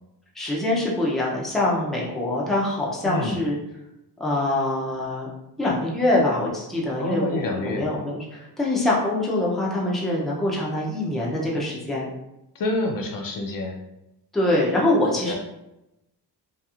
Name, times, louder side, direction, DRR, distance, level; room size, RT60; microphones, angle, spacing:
voice 1, 0.4-3.6 4.2-5.3 5.6-12.1 14.3-15.3, left 1 dB, ahead, -4 dB, 0.5 m, -24 dB
voice 2, 3.0-3.4 7.0-7.9 12.5-13.8 15.3-15.4, left 2 dB, 55° left, 2 dB, 0.5 m, -27 dB
2.9 x 2.5 x 2.4 m, 0.91 s
wide cardioid pair, 140°, 41 cm